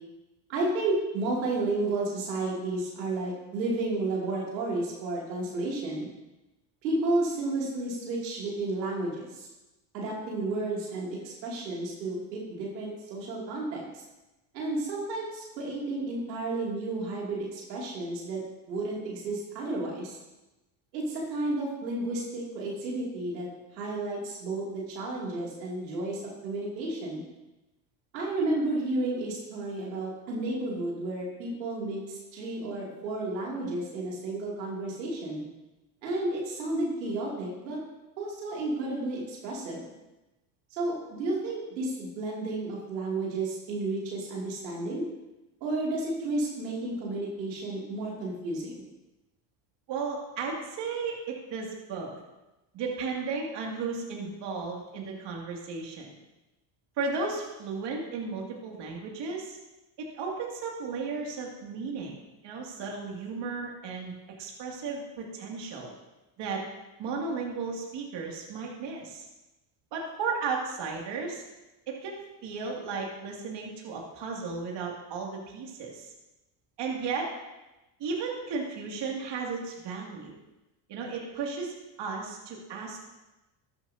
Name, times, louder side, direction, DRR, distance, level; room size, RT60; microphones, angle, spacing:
voice 1, 0.5-6.1 6.8-9.5 9.9-14.0 14.5-18.4 18.7-20.2 20.9-23.5 23.7-27.2 28.1-35.4 36.0-37.8 38.2-39.8 40.7-45.0 45.6-48.8, right 2 dB, 85° right, -3 dB, 2.7 m, -32 dB
voice 2, 49.9-52.2 52.7-56.1 57.0-59.6 60.0-64.1 64.4-65.9 66.4-66.7 67.0-69.3 69.9-71.4 71.9-76.1 76.8-77.3 78.0-80.3 80.9-83.2, right 4 dB, 55° right, -1 dB, 2.5 m, -34 dB
13.5 x 10.5 x 2.8 m, 1.0 s
hypercardioid pair, 70°, 50 cm